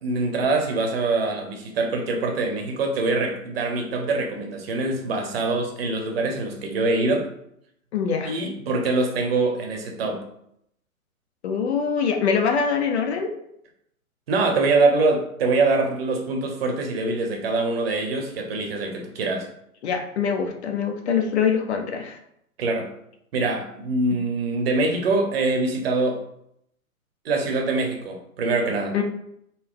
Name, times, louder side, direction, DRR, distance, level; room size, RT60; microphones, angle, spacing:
voice 1, 0.0-7.2 8.2-10.2 14.3-19.5 22.6-22.9 23.3-26.2 27.2-28.9, right 3 dB, 45° right, 3 dB, 0.8 m, -24 dB
voice 2, 7.9-8.3 11.4-13.3 19.8-22.2 28.9-29.0, left 6 dB, 50° left, 4 dB, 0.7 m, -24 dB
4.0 x 2.1 x 3.7 m, 0.73 s
hypercardioid pair, 135°, 43 cm